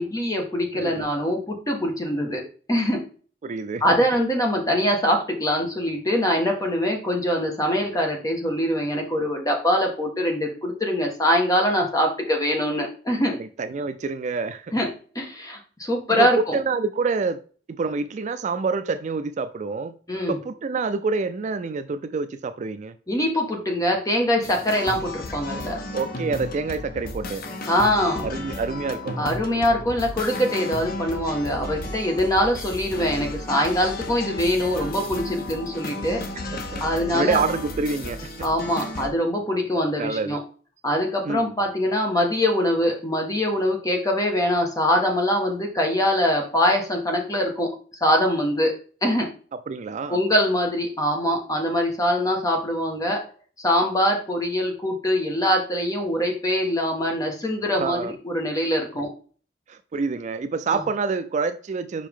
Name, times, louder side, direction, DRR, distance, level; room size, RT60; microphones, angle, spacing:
voice 1, 0.0-2.4 2.7-3.0 3.8-13.3 14.7-14.9 15.1-16.6 20.1-20.4 23.1-25.8 27.7-28.4 29.2-36.2 36.8-37.4 38.4-40.4 40.8-47.7 48.0-48.7 49.0-49.3 50.1-53.2 53.6-59.1 60.7-60.8, equal, 20° left, 1.5 m, -23 dB
voice 2, 0.7-1.1 3.4-4.0 13.3-14.7 16.1-17.4 17.7-19.9 20.3-23.0 25.9-27.4 28.2-29.3 36.3-38.3 40.0-40.4 41.2-41.5 49.7-50.2 57.8-58.1 59.7-62.1, right 4 dB, 40° right, 0.3 m, -27 dB
sound 1, 24.4-39.1, left 1 dB, 55° left, 1.0 m, -34 dB
5.4 x 5.1 x 3.6 m
head